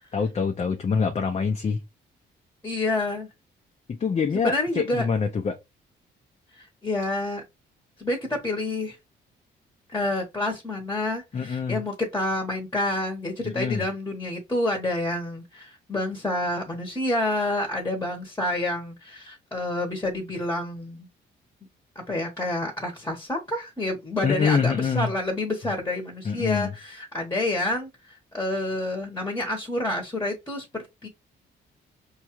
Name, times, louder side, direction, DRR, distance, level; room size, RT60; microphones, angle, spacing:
voice 1, 0.1-1.8 3.9-5.6 11.3-11.8 13.4-13.8 24.2-25.1 26.2-26.7, left 5 dB, 30° left, 0.5 m, -25 dB
voice 2, 2.6-3.3 4.3-5.1 6.5-7.4 8.0-9.0 9.9-21.1 21.9-31.1, left 1 dB, 15° left, 1.1 m, -28 dB
5.3 x 2.3 x 3.0 m
cardioid pair, 90°, 20 cm